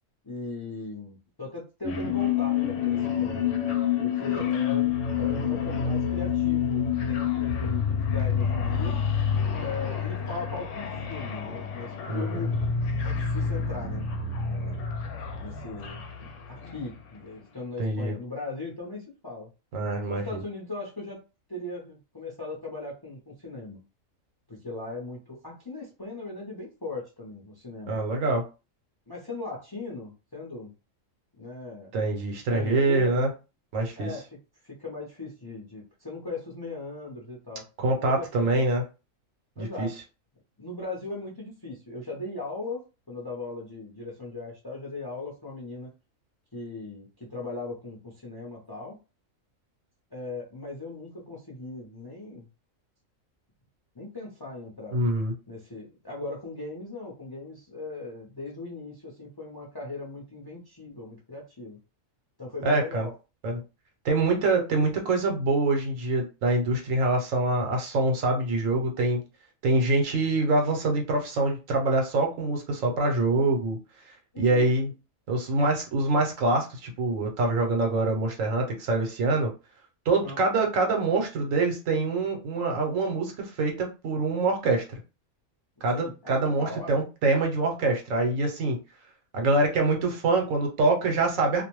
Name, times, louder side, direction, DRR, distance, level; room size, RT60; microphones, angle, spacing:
voice 1, 0.2-3.4 4.0-9.0 9.6-12.5 13.0-14.0 14.4-14.8 15.4-19.5 20.1-21.2 21.5-23.8 24.5-28.0 29.1-30.7 31.4-31.9 32.5-33.2 34.0-34.2 34.6-37.6 38.0-38.6 39.6-39.9 40.6-42.8 43.1-45.9 46.5-49.0 50.1-52.4 53.9-55.0 55.5-61.8 62.4-63.1 74.3-74.7 80.2-80.4 85.9-87.0, left 3 dB, 25° left, -2 dB, 0.5 m, -38 dB
sound 1, 1.8-17.0, left 7 dB, 70° left, 0.9 m, -28 dB
voice 2, 12.1-12.4 17.8-18.1 19.7-20.4 27.9-28.4 31.9-33.3 33.7-34.1 37.8-38.8 39.6-39.9 54.9-55.3 62.6-63.1 63.4-63.6 64.0-69.2 69.6-73.8 74.4-74.9 75.3-79.5 80.1-84.8 85.8-88.8 89.3-91.6, right 2 dB, 75° right, 2 dB, 1.1 m, -25 dB
2.4 x 2.1 x 3.0 m, 0.30 s
omnidirectional pair, 1.4 m